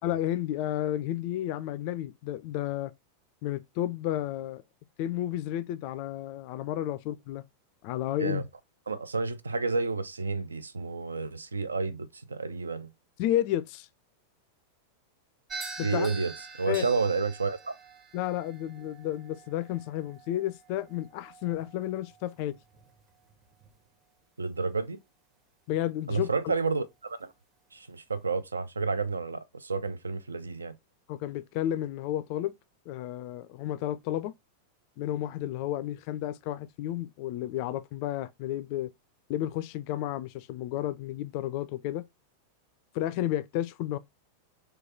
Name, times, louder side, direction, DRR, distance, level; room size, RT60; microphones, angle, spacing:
voice 1, 0.0-2.9 3.4-4.6 5.0-7.4 7.8-8.4 13.2-13.9 15.8-16.1 16.7-16.9 18.1-22.6 25.7-26.3 31.1-32.5 32.9-34.3 35.0-38.9 39.3-42.0 42.9-44.0, left 12 dB, 45° left, 0.3 m, -32 dB
voice 2, 8.9-12.9 15.8-16.3 16.6-17.7 24.4-25.0 26.1-27.3 27.7-30.7, right 4 dB, 75° right, 0.4 m, -30 dB
sound 1, 15.5-23.9, right 3 dB, 25° right, 0.8 m, -46 dB
3.1 x 2.3 x 4.0 m
figure-of-eight pair, 90°, 0 cm